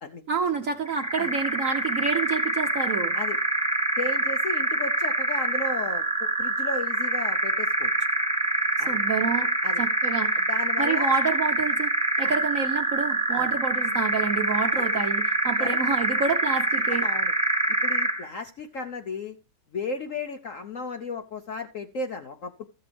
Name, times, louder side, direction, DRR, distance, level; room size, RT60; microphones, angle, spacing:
voice 1, 0.3-3.1 8.9-9.5 9.8-10.4 10.8-11.9 12.2-17.1, right 5 dB, 55° right, 0.9 m, -28 dB
sound 1, 0.9-18.3, right 2 dB, 5° right, 1.4 m, -25 dB
voice 2, 4.0-7.9 8.8-9.0 9.6-9.8 10.4-11.1 12.2-12.3 13.3-13.5 14.7-14.8 15.6-15.8 16.9-17.3 17.8-19.4 19.7-22.7, left 3 dB, 80° left, 0.7 m, -34 dB
14.0 x 7.9 x 3.4 m
omnidirectional pair, 2.4 m